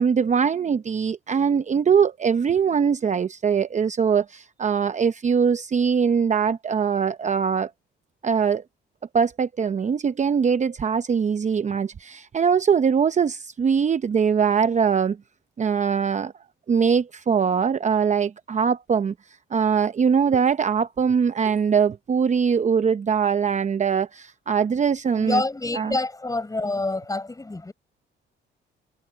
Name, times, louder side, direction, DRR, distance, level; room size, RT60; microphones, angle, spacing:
voice 1, 0.0-7.7 8.2-8.6 9.1-15.2 15.6-16.3 16.7-19.1 19.5-25.4 25.7-26.0, right 6 dB, 35° right, 0.7 m, -22 dB
voice 2, 25.1-27.7, left 2 dB, 15° left, 7.0 m, -27 dB
cardioid pair, 90°, 20 cm